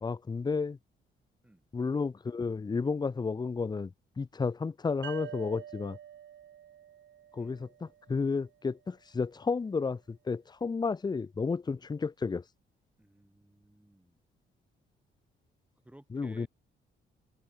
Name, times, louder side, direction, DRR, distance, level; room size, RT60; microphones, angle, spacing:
voice 1, 0.0-0.8 1.7-6.0 7.3-12.4 16.1-16.5, left 4 dB, 20° left, 0.6 m, -32 dB
sound 1, 5.0-8.5, right 10 dB, 65° right, 2.9 m, -47 dB
voice 2, 13.0-14.2 15.8-16.5, right 1 dB, 5° right, 1.8 m, -57 dB
cardioid pair, 90°, 20 cm